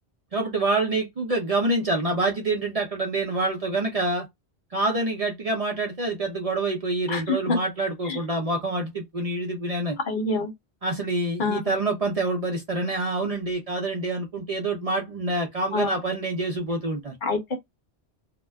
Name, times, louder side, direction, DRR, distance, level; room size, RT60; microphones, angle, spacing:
voice 1, 0.3-4.3 4.7-10.0 10.8-17.2, right 2 dB, 45° right, 0.5 m, -26 dB
voice 2, 7.1-7.6 8.0-8.2 10.1-10.5 11.4-11.6 15.7-15.9 17.2-17.6, left 3 dB, 55° left, 0.7 m, -26 dB
2.2 x 2.1 x 3.3 m
omnidirectional pair, 1.1 m